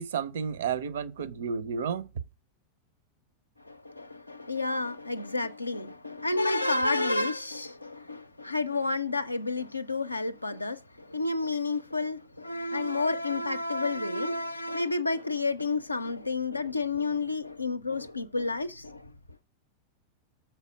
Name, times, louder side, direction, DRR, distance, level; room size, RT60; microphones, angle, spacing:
voice 1, 0.0-2.1, right 6 dB, 60° right, 0.5 m, -32 dB
voice 2, 3.7-19.0, left 3 dB, 85° left, 0.5 m, -30 dB
6.7 x 4.5 x 6.0 m
figure-of-eight pair, 90°, 0 cm